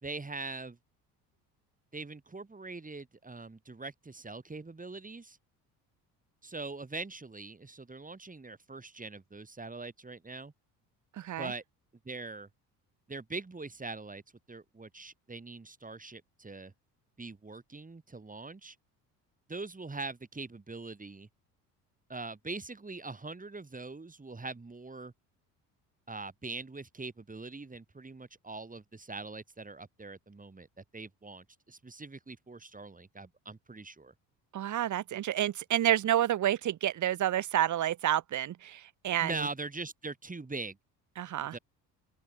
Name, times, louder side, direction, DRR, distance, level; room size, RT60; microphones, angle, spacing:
voice 1, 0.0-0.8 1.9-5.4 6.4-10.5 11.4-11.6 12.0-12.5 13.1-14.2 14.5-16.7 17.2-18.8 19.5-21.3 22.1-25.1 26.1-34.1 39.2-40.8 41.5-41.6, right 3 dB, 15° right, 4.8 m, -42 dB
voice 2, 11.2-11.5 34.5-39.3 41.2-41.5, right 12 dB, 35° right, 1.3 m, -29 dB
open air
figure-of-eight pair, 55°, 48 cm